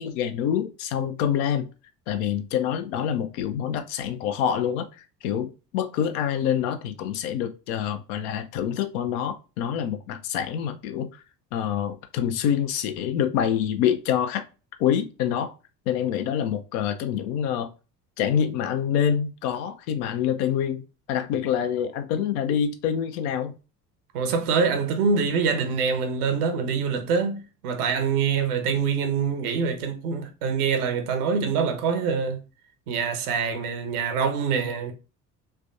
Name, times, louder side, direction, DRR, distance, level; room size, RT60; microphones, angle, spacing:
voice 1, 0.0-1.7 2.1-11.2 11.5-14.4 14.8-15.5 15.9-17.7 18.2-20.8 21.1-23.6, left 9 dB, 55° left, 0.7 m, -26 dB
voice 2, 24.1-32.4 32.9-34.9, right 5 dB, 65° right, 0.9 m, -25 dB
3.4 x 3.3 x 2.6 m
figure-of-eight pair, 60°, 49 cm